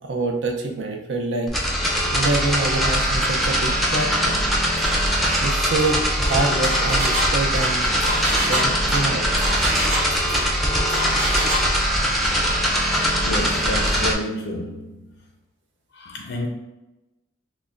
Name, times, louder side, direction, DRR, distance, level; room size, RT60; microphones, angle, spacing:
voice 1, 0.0-1.5 2.1-4.4 5.4-7.9 8.5-9.3, right 3 dB, 75° right, 0.5 m, -26 dB
sound 1, 1.5-14.1, equal, ahead, 0.5 m, -21 dB
Engine, 4.8-5.0 5.3-5.5 5.8-10.5 10.9-11.7, right 1 dB, 40° right, 1.0 m, -27 dB
voice 2, 13.2-15.1 15.9-16.5, left 1 dB, 75° left, 0.5 m, -30 dB
5.9 x 2.1 x 2.4 m
head